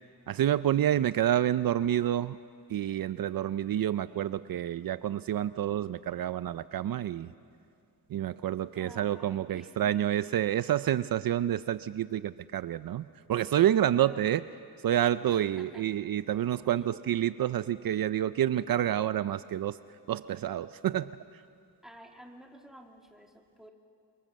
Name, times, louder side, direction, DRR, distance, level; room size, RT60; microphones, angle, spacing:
voice 1, 0.3-2.4 2.7-7.3 8.1-14.4 14.8-19.8 20.1-21.1, right 11 dB, 65° right, 14 dB, 0.6 m, -28 dB
voice 2, 8.8-10.1 14.0-14.2 15.2-15.9 16.7-16.9 21.8-23.7, equal, ahead, 1 dB, 2.9 m, -51 dB
29.0 x 25.0 x 7.5 m, 2.4 s
cardioid pair, 95°, 38 cm